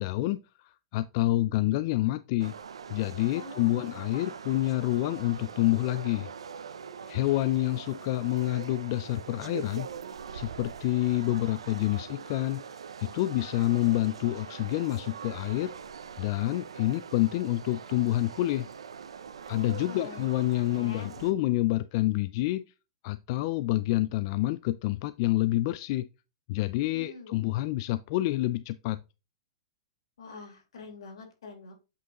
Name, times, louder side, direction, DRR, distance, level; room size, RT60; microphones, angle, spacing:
voice 1, 0.0-2.5 2.9-6.3 7.1-9.9 10.3-12.6 13.0-15.7 16.2-18.7 19.5-22.6 23.0-26.1 26.5-29.0, left 16 dB, 50° left, 0.4 m, -28 dB
sound 1, 2.4-21.3, right 7 dB, 90° right, 0.6 m, -43 dB
voice 2, 3.3-3.8 4.1-4.3 19.9-20.3 20.7-21.2 26.9-27.4 30.2-31.7, left 3 dB, 80° left, 3.4 m, -45 dB
8.2 x 4.8 x 2.9 m
hypercardioid pair, 125°, 3 cm